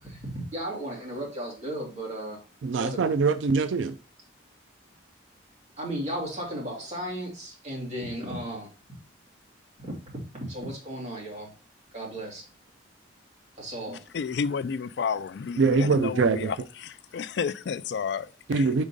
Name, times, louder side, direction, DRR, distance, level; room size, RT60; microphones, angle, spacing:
voice 1, 0.0-2.4 2.8-3.0 5.8-8.7 9.8-9.9 10.5-11.5 11.9-12.4 13.6-14.0, right 1 dB, 35° right, 2.6 m, -35 dB
voice 2, 2.6-4.0 15.6-16.5 18.5-18.8, right 4 dB, 80° right, 0.4 m, -23 dB
voice 3, 14.1-16.6 16.8-18.7, left 6 dB, 65° left, 0.3 m, -31 dB
5.3 x 3.6 x 5.1 m
head